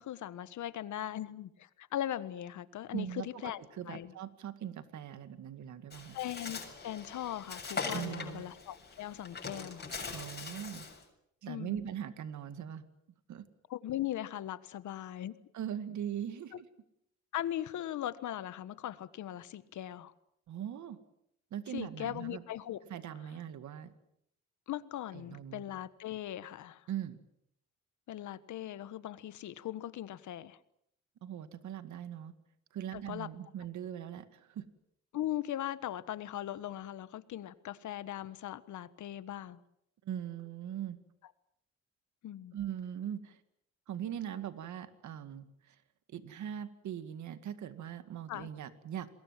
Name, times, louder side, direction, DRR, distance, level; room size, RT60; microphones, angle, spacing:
voice 1, 0.0-4.1 6.1-9.9 11.5-11.8 13.7-15.3 17.3-20.1 21.7-22.8 24.7-26.8 28.1-30.6 32.9-33.3 35.1-39.6 42.2-42.6 48.3-48.5, left 12 dB, 75° left, 14 dB, 1.5 m, -39 dB
voice 2, 2.9-6.2 7.9-8.4 10.1-10.9 11.4-12.9 13.3-13.5 15.5-16.7 20.5-21.0 21.5-22.4 22.9-23.9 25.1-25.6 26.9-27.2 31.2-32.3 32.7-34.6 40.0-41.0 42.5-43.4 43.9-45.8 46.1-49.1, right 10 dB, 70° right, 11 dB, 2.1 m, -41 dB
Bird, 5.9-11.0, left 4 dB, 35° left, 7.0 m, -42 dB
27.5 x 21.5 x 7.6 m, 0.74 s
cardioid pair, 90°, 30 cm